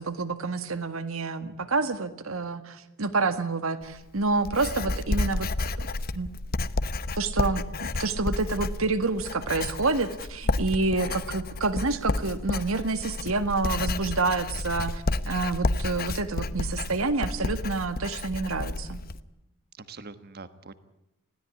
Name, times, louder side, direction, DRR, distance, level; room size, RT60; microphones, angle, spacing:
voice 1, 0.0-5.7 6.1-6.5 7.2-19.0, right 3 dB, 75° right, 11 dB, 1.7 m, -28 dB
Writing, 3.8-19.2, left 2 dB, 45° left, 0.9 m, -31 dB
voice 2, 19.8-20.7, right 3 dB, 45° right, 12 dB, 1.4 m, -44 dB
20.5 x 16.5 x 10.0 m, 0.91 s
head